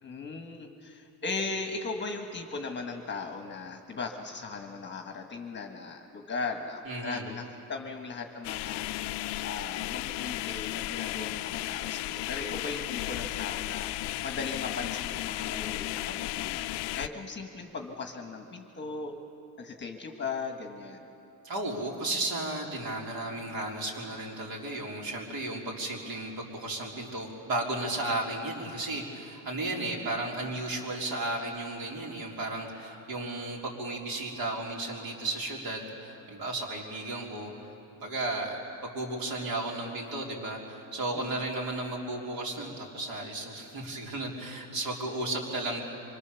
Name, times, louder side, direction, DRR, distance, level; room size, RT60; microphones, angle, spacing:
voice 1, 0.0-8.8 9.4-16.7 16.9-19.1 19.6-21.0 29.8-30.0 41.1-41.4, left 4 dB, 25° left, 4 dB, 1.4 m, -38 dB
voice 2, 6.9-7.3 21.4-37.5 38.0-45.8, right 2 dB, 50° right, -1 dB, 4.2 m, -34 dB
sound 1, 8.4-17.1, left 16 dB, 65° left, 0.6 m, -34 dB
25.0 x 24.5 x 7.0 m, 2.9 s
cardioid pair, 160°, 46 cm